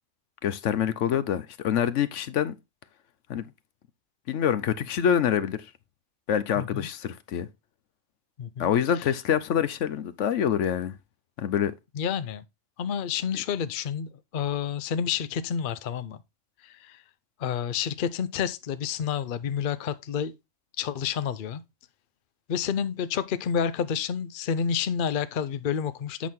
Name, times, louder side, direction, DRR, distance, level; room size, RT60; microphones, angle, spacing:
voice 1, 0.4-2.5 3.3-3.4 4.3-5.6 6.3-7.5 8.6-10.9 11.4-11.7, left 9 dB, 70° left, 1.0 m, -26 dB
voice 2, 6.6-6.9 8.4-8.7 12.0-12.4 12.8-16.2 16.7-17.0 17.4-20.3 20.8-21.6 22.5-26.3, left 7 dB, 50° left, 0.7 m, -29 dB
8.4 x 6.1 x 3.6 m
omnidirectional pair, 1.3 m